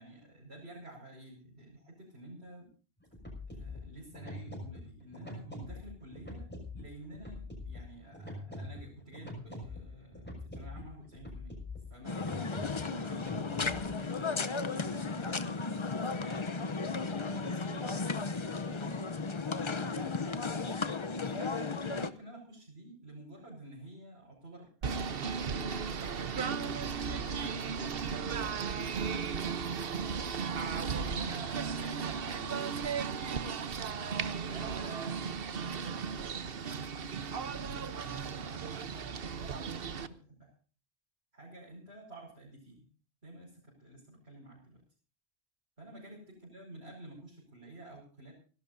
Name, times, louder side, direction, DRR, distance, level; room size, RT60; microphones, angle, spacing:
voice 1, 0.0-2.7 3.5-6.4 6.7-11.6 11.9-20.7 21.3-30.2 30.6-32.6 34.4-35.2 35.5-40.5 41.3-42.9 43.2-44.8 45.8-46.2 46.5-48.3, right 2 dB, 85° right, -3 dB, 5.8 m, -50 dB
sound 1, 3.0-14.0, left 2 dB, 10° left, 6.2 m, -45 dB
sound 2, 12.0-22.1, left 4 dB, 30° left, 0.7 m, -35 dB
Singing / Bird, 24.8-40.1, right 6 dB, 65° right, 1.1 m, -35 dB
29.5 x 12.0 x 2.7 m, 0.39 s
omnidirectional pair, 1.1 m